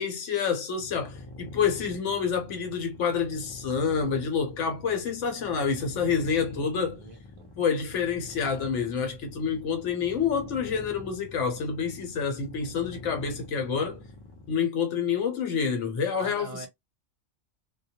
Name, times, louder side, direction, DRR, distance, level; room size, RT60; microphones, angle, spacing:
voice 1, 0.0-7.0 7.6-14.0 14.5-16.7, left 6 dB, 70° left, 1.0 m, -28 dB
sound 1, 0.8-14.6, left 1 dB, 30° left, 0.4 m, -45 dB
voice 2, 6.5-7.5 16.2-16.7, right 3 dB, 40° right, 0.4 m, -43 dB
2.2 x 2.1 x 2.8 m
omnidirectional pair, 1.3 m